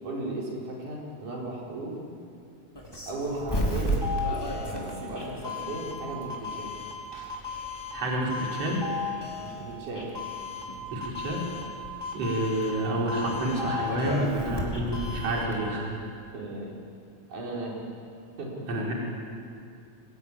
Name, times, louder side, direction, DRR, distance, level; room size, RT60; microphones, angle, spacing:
voice 1, 0.0-2.0 3.1-4.0 4.3-6.7 9.4-10.1 16.3-16.8 17.3-17.8 18.4-18.6, right 2 dB, 85° right, -2 dB, 6.0 m, -36 dB
Doorbell, 2.7-15.5, left 1 dB, 5° left, 4.2 m, -33 dB
voice 2, 7.9-8.8 10.9-11.5 12.1-15.9 18.7-18.9, right 1 dB, 55° right, -2 dB, 5.0 m, -29 dB
26.5 x 21.0 x 9.9 m, 2.4 s
omnidirectional pair, 3.4 m